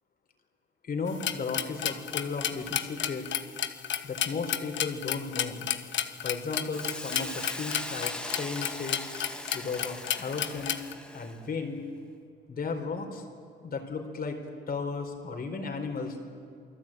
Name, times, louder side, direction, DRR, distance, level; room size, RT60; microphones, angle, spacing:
voice 1, 0.8-3.3 4.0-5.7 6.2-9.0 9.5-10.7 11.1-11.8 12.5-13.2 13.6-14.4 14.7-16.2, left 4 dB, 50° left, 4 dB, 4.4 m, -34 dB
sound 1, 1.1-10.9, left 10 dB, 70° left, 1.3 m, -32 dB
Hiss, 6.7-11.4, left 1 dB, 5° left, 1.9 m, -40 dB
28.5 x 19.5 x 9.1 m, 2.4 s
cardioid pair, 90°, 20 cm